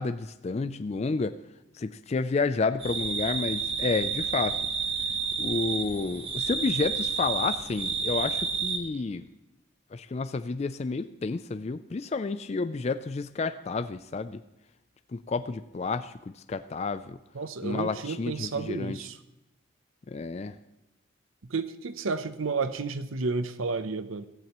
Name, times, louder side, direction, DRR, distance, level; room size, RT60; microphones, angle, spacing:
voice 1, 0.0-1.4 1.8-4.6 5.4-9.3 9.9-14.4 15.1-17.2 17.6-19.0 20.1-20.5, left 4 dB, 35° left, 11 dB, 0.3 m, -30 dB
sound 1, 2.8-8.8, right 5 dB, 25° right, 1.2 m, -30 dB
voice 2, 17.3-19.2 21.4-24.3, right 4 dB, 90° right, 12 dB, 0.7 m, -31 dB
15.5 x 15.0 x 3.0 m, 0.92 s
head